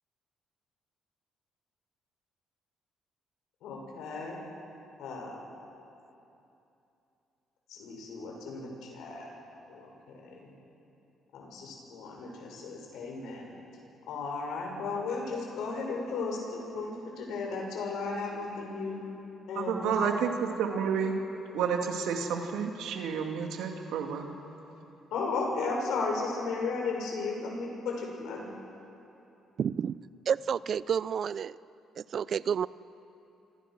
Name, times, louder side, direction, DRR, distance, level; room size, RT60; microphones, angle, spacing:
voice 1, 3.6-4.4 5.0-5.4 7.7-9.3 9.7-9.9 10.2-10.4 11.3-13.5 14.1-19.0 19.5-19.9 25.1-28.5, left 4 dB, 85° left, 0 dB, 6.7 m, -35 dB
voice 2, 19.5-21.2 21.5-24.3, right 6 dB, 85° right, 3 dB, 2.7 m, -30 dB
voice 3, 29.6-30.0 30.3-31.6 32.0-32.7, right 7 dB, 50° right, 18 dB, 0.5 m, -30 dB
28.0 x 25.5 x 6.4 m, 2.9 s
cardioid pair, 110°, 0 cm